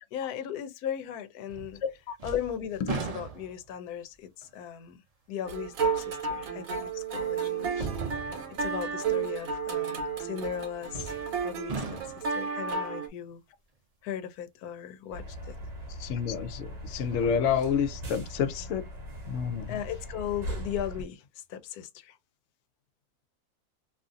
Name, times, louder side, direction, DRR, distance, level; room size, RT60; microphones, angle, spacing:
voice 1, 0.1-1.8 2.2-5.0 5.3-7.9 8.6-11.1 11.4-13.4 14.0-15.5 19.7-22.2, left 9 dB, 90° left, 1.1 m, -37 dB
sound 1, 1.5-1.9 2.2-3.8 4.4-4.5 6.3-6.4 7.7-8.6 10.9-11.4 11.7-12.4 15.4-15.5 16.9-17.8 18.2-18.3, right 4 dB, 50° right, 0.4 m, -37 dB
sound 2, 5.4-13.1, right 5 dB, 70° right, 1.2 m, -32 dB
sound 3, 15.1-21.0, equal, 35° right, 0.8 m, -40 dB
voice 2, 16.0-18.9 19.2-19.7, left 7 dB, 65° left, 0.7 m, -29 dB
2.7 x 2.4 x 2.5 m
omnidirectional pair, 1.6 m